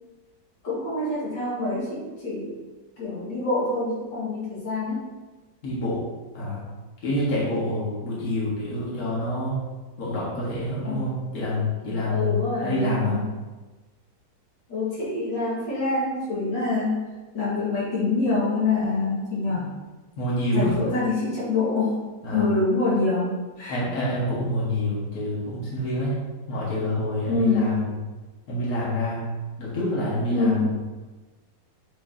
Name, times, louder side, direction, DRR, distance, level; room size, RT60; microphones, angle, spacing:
voice 1, 0.6-2.5 3.0-5.1 10.8-11.1 12.1-13.2 14.7-17.0 17.3-19.7 20.5-22.0 22.3-23.8 27.3-27.8 30.3-30.7, left 3 dB, 70° left, -7 dB, 2.3 m, -25 dB
voice 2, 5.6-6.0 6.3-6.6 7.0-9.6 10.0-13.2 20.2-20.7 22.2-22.5 23.7-26.2 26.5-27.9 28.5-29.3 29.6-30.7, left 1 dB, 50° left, -7 dB, 1.9 m, -27 dB
7.6 x 4.5 x 2.7 m, 1.2 s
omnidirectional pair, 2.0 m